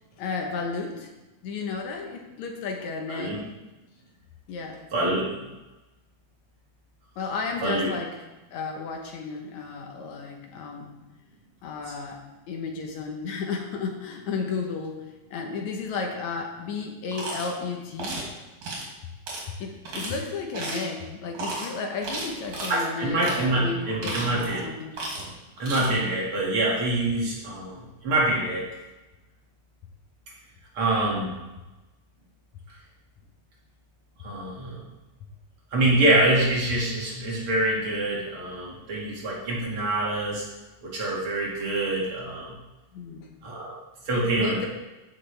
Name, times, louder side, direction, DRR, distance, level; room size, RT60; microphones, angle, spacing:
voice 1, 0.2-1.1 1.4-3.5 4.5-4.8 7.2-8.1 8.5-10.9 11.6-12.2 12.5-15.0 15.3-18.2 19.6-25.0 41.6-41.7 42.9-43.3 44.4-44.7, left 4 dB, 70° left, 2 dB, 2.2 m, -33 dB
voice 2, 3.1-3.4 4.9-5.5 7.6-7.9 22.7-24.7 25.6-28.6 30.7-31.4 34.2-34.8 35.7-40.4 40.8-42.6 43.4-43.7 44.1-44.7, right 1 dB, 45° right, -4 dB, 2.7 m, -25 dB
sound 1, 17.1-17.5 18.0-18.3 18.6-18.9 19.3-19.4 19.8-20.2 20.5-20.9 21.3-21.7 22.0-22.8 23.2-23.4 23.8-24.6 24.9-25.3 25.6-25.9, right 2 dB, 70° right, 3.7 m, -33 dB
14.5 x 6.4 x 3.3 m, 1.1 s
omnidirectional pair, 3.5 m